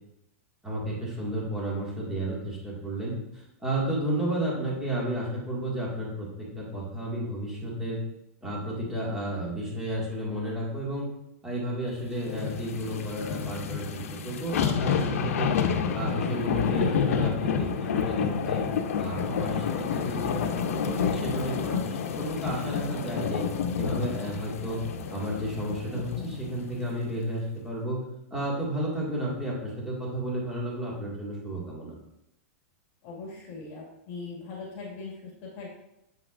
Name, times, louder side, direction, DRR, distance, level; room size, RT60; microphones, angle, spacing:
voice 1, 0.6-6.3 6.6-8.0 8.4-11.1 11.4-15.5 15.9-18.7 19.0-23.4 23.8-24.8 25.1-28.0 28.3-31.9, right 1 dB, 5° right, -6 dB, 2.0 m, -32 dB
sound 1, 12.2-26.7 27.1-27.2, left 6 dB, 80° left, 0.7 m, -29 dB
voice 2, 33.0-35.7, left 4 dB, 45° left, -4 dB, 2.0 m, -40 dB
7.8 x 5.7 x 2.5 m, 0.84 s
supercardioid pair, 145°, 7 cm